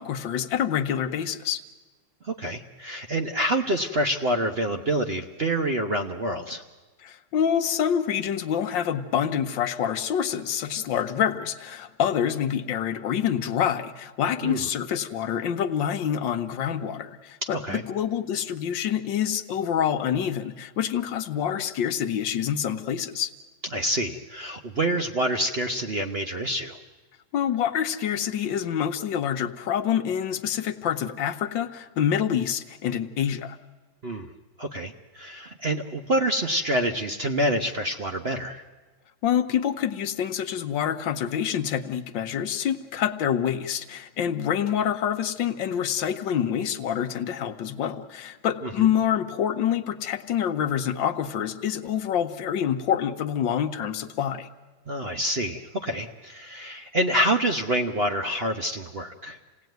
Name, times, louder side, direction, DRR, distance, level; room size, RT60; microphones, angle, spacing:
voice 1, 0.0-1.6 7.0-23.3 27.3-33.6 39.2-54.5, left 9 dB, 75° left, 8 dB, 1.6 m, -26 dB
voice 2, 2.2-6.6 14.4-14.7 17.4-17.8 23.7-26.8 34.0-34.3 34.6-38.6 48.6-48.9 54.9-59.4, right 1 dB, 40° right, 5 dB, 0.9 m, -27 dB
27.5 x 18.0 x 9.3 m, 1.3 s
omnidirectional pair, 2.1 m